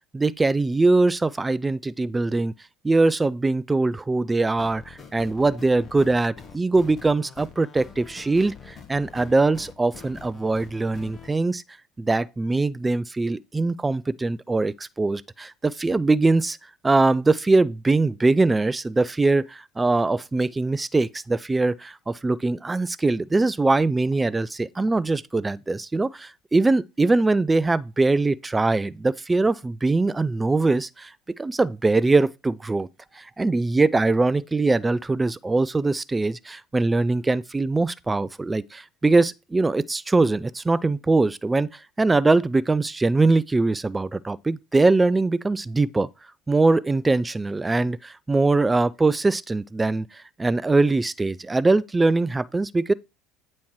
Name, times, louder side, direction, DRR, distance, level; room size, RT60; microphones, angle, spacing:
voice 1, 0.1-2.5 2.8-11.6 12.0-16.6 16.8-31.1 31.4-32.9 33.1-46.1 46.5-52.9, right 3 dB, 15° right, 0.3 m, -22 dB
sound 1, 4.6-11.3, left 6 dB, 35° left, 1.2 m, -44 dB
8.5 x 3.1 x 4.4 m
hypercardioid pair, 75°, 0 cm